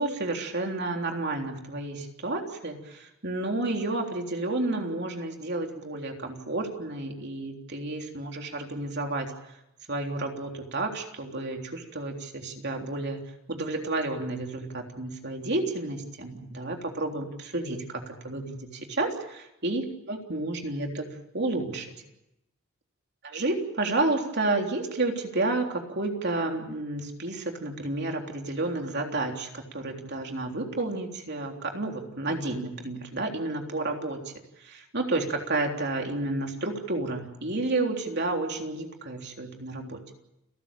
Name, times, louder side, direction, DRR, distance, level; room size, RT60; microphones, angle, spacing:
voice 1, 0.0-9.3 9.9-13.2 13.5-21.1 21.3-21.9 23.2-34.3 34.6-40.0, right 2 dB, 50° right, 2 dB, 3.5 m, -31 dB
30.0 x 14.0 x 8.9 m, 0.87 s
head